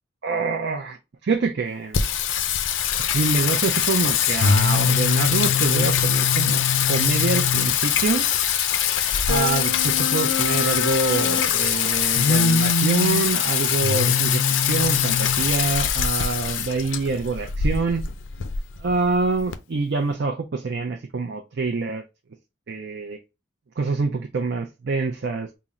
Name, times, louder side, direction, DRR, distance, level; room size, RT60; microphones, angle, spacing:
voice 1, 0.2-1.0 1.2-2.0 3.0-8.3 9.3-18.0 18.8-22.0 22.7-23.2 23.8-25.6, right 4 dB, 60° right, 0.5 m, -26 dB
Singing, 1.9-19.5, left 7 dB, 90° left, 0.5 m, -22 dB
3.7 x 2.0 x 4.1 m
head